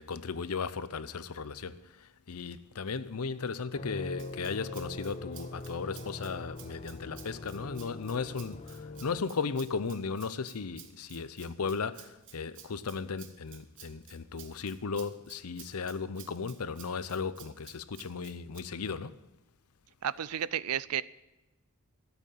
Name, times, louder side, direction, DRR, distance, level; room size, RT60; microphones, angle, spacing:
voice 1, 0.0-19.2, left 5 dB, 90° left, 0.7 m, -36 dB
sound 1, 3.7-9.2, left 2 dB, 30° left, 0.6 m, -42 dB
Rattle (instrument), 4.2-18.6, right 10 dB, 60° right, 1.2 m, -54 dB
voice 2, 20.0-21.0, right 9 dB, 90° right, 0.5 m, -32 dB
12.5 x 8.1 x 9.1 m
head